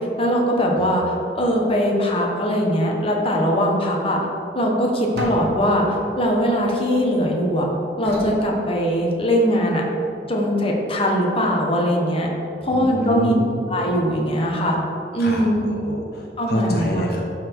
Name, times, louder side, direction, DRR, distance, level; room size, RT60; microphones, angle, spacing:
voice 1, 0.2-4.2 4.5-7.7 8.0-9.8 10.3-12.3 12.6-13.3 13.7-14.8 15.1-15.6 16.4-17.1, equal, 35° left, -1 dB, 1.1 m, -21 dB
sound 1, 5.2-7.4 8.0-9.4, right 1 dB, 65° right, 1.4 m, -37 dB
voice 2, 12.7-13.6 15.2-17.2, equal, 60° left, -1 dB, 0.9 m, -28 dB
11.5 x 4.2 x 4.6 m, 2.7 s
head